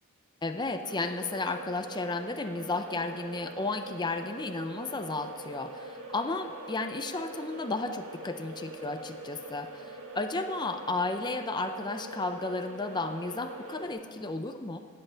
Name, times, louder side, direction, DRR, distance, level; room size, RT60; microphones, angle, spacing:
voice 1, 0.4-14.8, left 3 dB, 20° left, 7 dB, 0.6 m, -33 dB
sound 1, 0.8-13.9, right 1 dB, 75° right, 1.5 m, -44 dB
16.0 x 5.6 x 9.2 m, 2.3 s
head